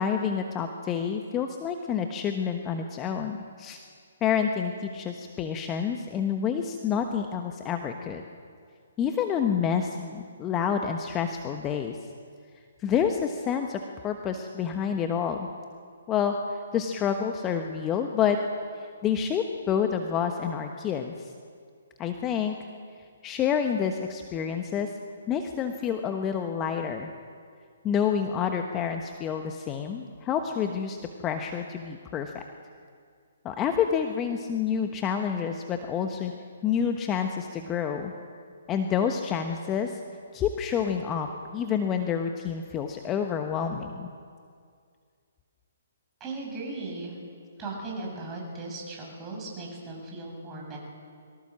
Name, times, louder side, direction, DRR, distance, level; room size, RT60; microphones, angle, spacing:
voice 1, 0.0-3.8 4.2-8.2 9.0-12.0 12.8-15.5 16.1-18.4 19.0-21.3 22.0-22.6 23.2-24.9 25.3-27.1 27.8-31.0 31.2-32.4 33.4-36.3 36.6-38.1 38.7-40.0 40.3-41.3 41.5-44.1, left 7 dB, 20° left, 5 dB, 1.2 m, -28 dB
voice 2, 46.2-47.2 47.6-50.8, right 2 dB, 20° right, -1 dB, 7.4 m, -37 dB
23.0 x 17.5 x 7.6 m, 2.2 s
figure-of-eight pair, 135°, 0 cm